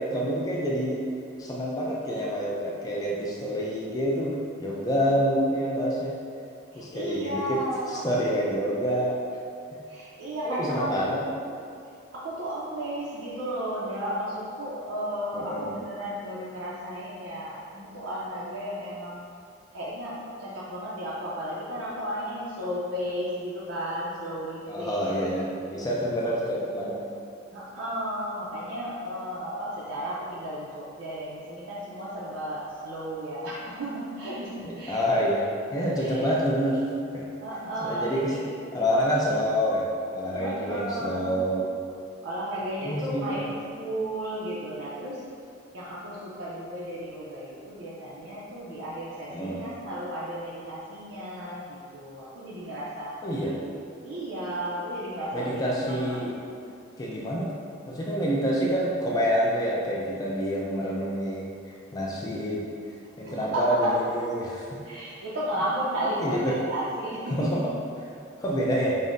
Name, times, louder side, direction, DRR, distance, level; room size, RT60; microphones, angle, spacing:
voice 1, 0.1-1.0 1.4-6.1 6.7-7.6 7.9-9.2 9.7-9.8 10.4-11.2 15.3-15.7 24.7-27.0 34.6-35.4 35.7-36.8 37.1-37.3 37.8-38.3 38.7-41.7 42.8-43.5 49.3-49.7 53.2-53.5 55.3-56.3 57.0-57.5 57.9-61.5 61.9-62.7 63.2-64.7 66.2-66.5 67.3-67.6 68.4-69.0, equal, 20° left, -4 dB, 0.3 m, -27 dB
voice 2, 6.7-8.1 9.9-11.1 12.1-19.2 19.7-25.2 27.5-35.0 36.0-36.3 37.4-38.4 40.4-41.4 42.2-45.2 45.7-53.2 53.5-53.6 54.0-56.6 63.2-63.9 64.8-67.6, right 1 dB, 75° right, -7 dB, 0.5 m, -34 dB
5.3 x 2.1 x 2.5 m, 2.4 s
head